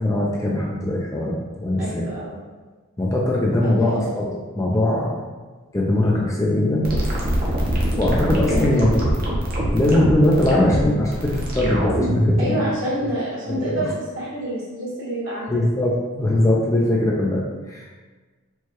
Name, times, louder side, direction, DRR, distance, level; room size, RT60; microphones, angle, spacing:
voice 1, 0.0-2.1 3.0-5.1 5.7-6.9 8.0-9.0 9.7-12.6 13.5-13.9 15.5-17.9, left 1 dB, 15° left, -3 dB, 0.4 m, -21 dB
voice 2, 1.8-2.4 3.6-4.0 8.5-8.7 12.4-15.6, right 1 dB, 60° right, -6 dB, 1.3 m, -27 dB
sound 1, 6.8-12.4, equal, 45° right, 0.7 m, -23 dB
4.5 x 2.2 x 3.0 m, 1.3 s
head